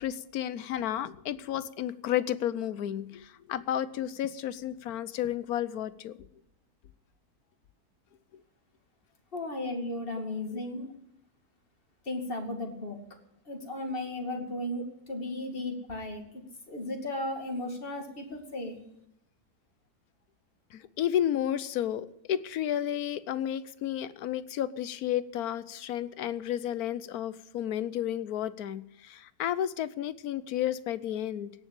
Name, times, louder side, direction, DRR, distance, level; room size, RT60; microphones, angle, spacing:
voice 1, 0.0-6.2 10.5-10.6 20.7-31.5, left 11 dB, 75° left, 16 dB, 1.2 m, -32 dB
voice 2, 9.3-10.9 12.0-13.0 13.5-18.8, left 1 dB, 35° left, 3 dB, 2.6 m, -35 dB
17.0 x 7.3 x 8.9 m, 0.78 s
omnidirectional pair, 1.6 m